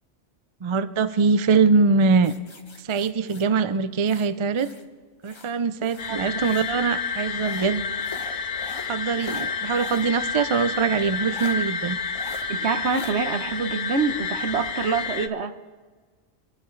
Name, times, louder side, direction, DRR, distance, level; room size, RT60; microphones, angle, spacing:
voice 1, 0.6-2.3 2.8-4.7 5.2-7.8 8.8-12.0, right 5 dB, 40° right, 12 dB, 0.4 m, -22 dB
sound 1, 2.2-4.9 5.2-6.8 7.4-10.1 10.5-10.6 11.3-11.6 12.1-12.4 12.9-13.1, left 3 dB, 25° left, 0.9 m, -42 dB
sound 2, 6.0-15.3, left 6 dB, 85° left, 1.1 m, -30 dB
voice 2, 6.1-6.4 12.5-15.5, right 5 dB, 65° right, 9 dB, 1.2 m, -26 dB
24.5 x 12.0 x 3.2 m, 1.4 s
omnidirectional pair, 1.2 m